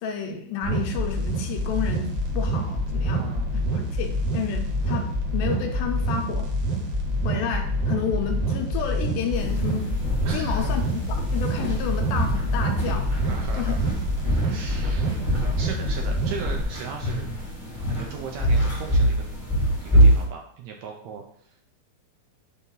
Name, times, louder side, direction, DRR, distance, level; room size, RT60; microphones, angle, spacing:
voice 1, 0.0-3.2 3.5-6.5 7.2-9.8 10.3-11.0 11.3-13.1 13.6-13.7, left 7 dB, 80° left, 3 dB, 2.4 m, -30 dB
sound 1, 0.6-16.6, equal, 60° right, 1.8 m, -26 dB
voice 2, 3.1-3.5 10.2-10.8 13.2-13.9 14.4-17.3 17.8-19.2 19.8-21.2, right 6 dB, 75° right, 1 dB, 1.7 m, -38 dB
sound 2, 9.3-20.2, right 1 dB, 35° left, 0.5 m, -25 dB
6.5 x 2.6 x 5.5 m, 0.62 s
omnidirectional pair, 3.7 m